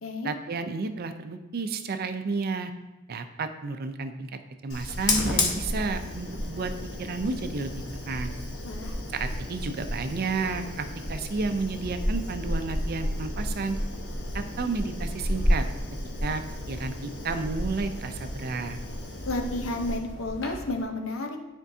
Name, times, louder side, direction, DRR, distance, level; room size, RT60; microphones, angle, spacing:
voice 1, 0.2-2.7 3.1-4.3 4.6-6.7 7.0-7.7 8.1-8.3 9.1-13.8 14.3-15.6 16.2-18.8, right 3 dB, 50° right, 8 dB, 0.5 m, -31 dB
Fire, 4.7-20.8, left 1 dB, 60° left, 1.1 m, -32 dB
voice 2, 19.3-21.4, left 2 dB, 80° left, 4 dB, 0.8 m, -31 dB
9.8 x 4.4 x 2.7 m, 1.1 s
head